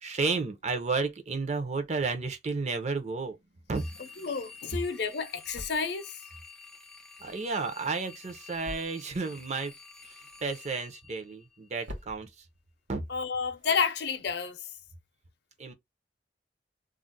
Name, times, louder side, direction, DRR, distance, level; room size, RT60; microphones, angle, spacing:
voice 1, 0.0-3.4 3.7-4.2 7.2-9.7 10.1-12.3 12.9-13.0 15.6-15.7, right 4 dB, 40° right, 0.6 m, -32 dB
sound 1, 3.3-14.5, equal, 90° right, 0.9 m, -51 dB
sound 2, 3.7-11.9, left 4 dB, 5° left, 0.3 m, -50 dB
voice 2, 4.0-6.2 13.1-14.7, left 5 dB, 65° left, 0.5 m, -31 dB
2.4 x 2.0 x 3.8 m
head